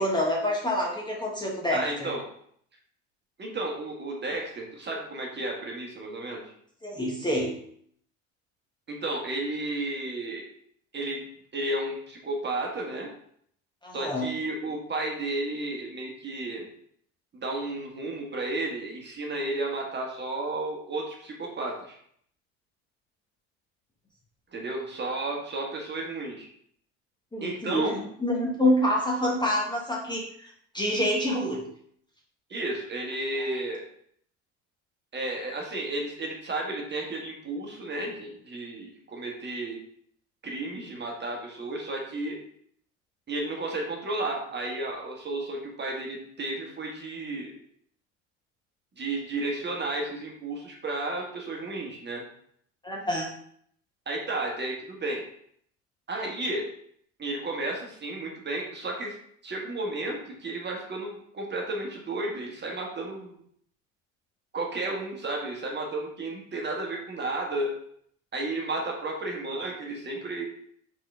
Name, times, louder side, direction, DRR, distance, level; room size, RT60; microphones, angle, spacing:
voice 1, 0.0-2.1 6.8-7.6 13.8-14.3 27.3-27.9 28.2-30.5 30.7-31.6 33.3-33.6 52.8-53.3, left 1 dB, 10° left, -3 dB, 1.0 m, -27 dB
voice 2, 1.7-2.2 3.4-6.4 8.9-10.4 10.9-11.2 11.5-13.1 13.9-16.7 17.4-22.0 24.5-26.5 27.4-28.0 32.5-33.8 35.1-39.8 40.4-42.4 43.3-47.5 49.0-52.2 54.1-55.2 56.1-56.7 57.2-59.1 59.4-63.3 64.5-67.7 68.3-70.4, right 2 dB, 30° right, 0 dB, 1.3 m, -32 dB
3.8 x 3.7 x 3.3 m, 0.65 s
hypercardioid pair, 80°, 37 cm